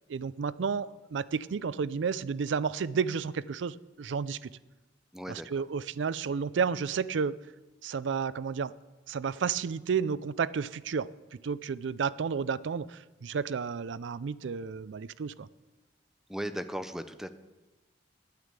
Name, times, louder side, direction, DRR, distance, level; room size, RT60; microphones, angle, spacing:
voice 1, 0.1-4.5 5.3-7.4 7.8-8.7 9.1-11.1 11.4-15.5, right 6 dB, 80° right, 18 dB, 0.4 m, -31 dB
voice 2, 5.1-5.6 16.3-17.3, equal, ahead, 9 dB, 0.7 m, -37 dB
10.5 x 9.5 x 8.2 m, 1.1 s
head